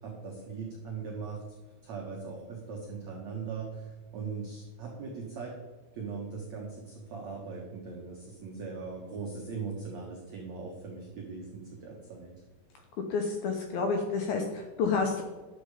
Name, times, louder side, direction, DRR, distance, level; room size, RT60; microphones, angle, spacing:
voice 1, 0.0-1.4 1.8-5.6 5.9-12.3, right 5 dB, 70° right, -2 dB, 1.6 m, -40 dB
voice 2, 13.1-15.2, left 4 dB, 80° left, 3 dB, 2.2 m, -29 dB
11.0 x 7.8 x 5.0 m, 1.3 s
omnidirectional pair, 5.5 m